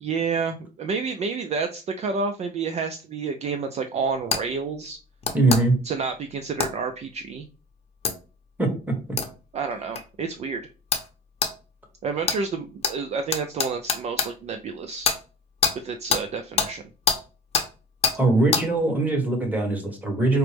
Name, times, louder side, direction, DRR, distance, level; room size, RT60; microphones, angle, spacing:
voice 1, 0.0-5.0 5.8-7.4 9.5-10.6 12.0-15.1 15.8-16.8, right 5 dB, 40° right, 7 dB, 0.4 m, -29 dB
sound 1, 4.3-4.4 5.2-5.6 6.6-6.7 8.0-8.1 9.2-9.3 10.0-10.1 10.9-11.1 11.4-11.5 12.2-12.4 12.8-12.9 13.3-14.3 15.0-15.2 15.6-15.7 16.1-16.2 16.6-16.7 17.1-17.2 17.5-17.7 18.0-18.2 18.5-18.6, left 5 dB, 35° left, 0.7 m, -23 dB
voice 2, 5.3-5.8 8.6-9.2 18.2-20.4, right 2 dB, 10° right, 2 dB, 1.2 m, -22 dB
4.3 x 2.0 x 3.3 m, 0.34 s
cardioid pair, 110°, 17 cm